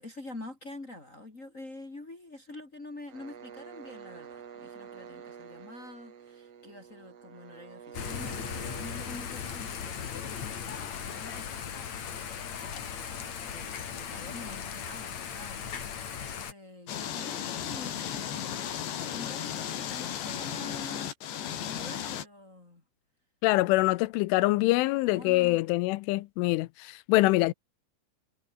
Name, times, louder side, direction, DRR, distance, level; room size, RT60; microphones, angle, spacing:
voice 1, 0.0-11.9 12.3-22.8 25.1-25.6, left 2 dB, 25° left, 1.8 m, -47 dB
sound 1, 3.1-10.8, right 7 dB, 80° right, 7.0 m, -48 dB
Thunder / Rain, 7.9-16.5, left 7 dB, 45° left, 2.9 m, -38 dB
sound 2, 16.9-22.3, left 9 dB, 65° left, 4.7 m, -35 dB
voice 2, 23.4-27.5, left 20 dB, 85° left, 3.1 m, -25 dB
omnidirectional pair, 5.6 m